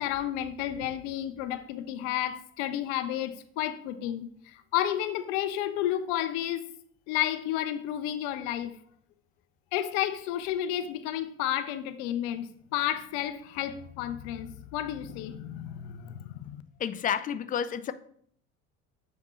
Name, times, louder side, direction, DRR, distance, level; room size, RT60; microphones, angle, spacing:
voice 1, 0.0-6.6 7.1-8.7 9.7-16.6, left 11 dB, 55° left, 0.7 m, -31 dB
voice 2, 16.8-17.9, left 8 dB, 20° left, 0.4 m, -30 dB
7.5 x 5.0 x 3.1 m
figure-of-eight pair, 65°, 41 cm